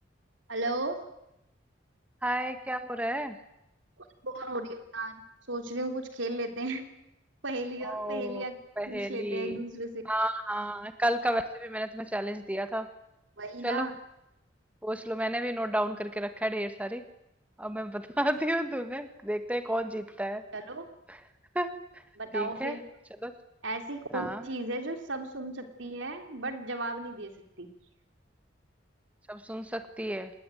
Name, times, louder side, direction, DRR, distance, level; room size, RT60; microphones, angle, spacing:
voice 1, 0.5-1.0 4.2-6.9 7.4-8.6 8.9-10.0 13.4-13.9 20.5-20.9 22.2-22.8 23.6-27.3 27.6-27.7, right 2 dB, 80° right, 6 dB, 3.6 m, -35 dB
voice 2, 2.2-3.4 7.8-8.4 8.8-9.6 10.1-12.9 13.6-13.9 14.8-17.0 17.6-20.4 21.5-21.7 22.3-22.7 23.2-23.3 24.1-24.4 29.3-30.3, right 1 dB, 5° right, 9 dB, 1.5 m, -31 dB
27.0 x 20.0 x 9.3 m, 0.86 s
head